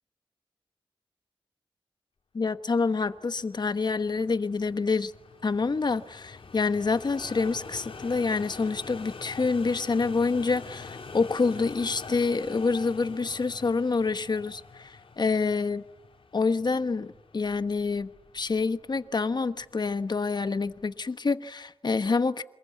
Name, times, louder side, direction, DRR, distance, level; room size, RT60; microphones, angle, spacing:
voice 1, 2.3-5.1 5.4-15.8 16.3-22.4, left 4 dB, 50° left, 11 dB, 1.2 m, -27 dB
sound 1, 2.8-21.1, left 4 dB, 75° left, 3.3 m, -46 dB
27.5 x 21.5 x 9.5 m, 0.90 s
wide cardioid pair, 100°, 9 cm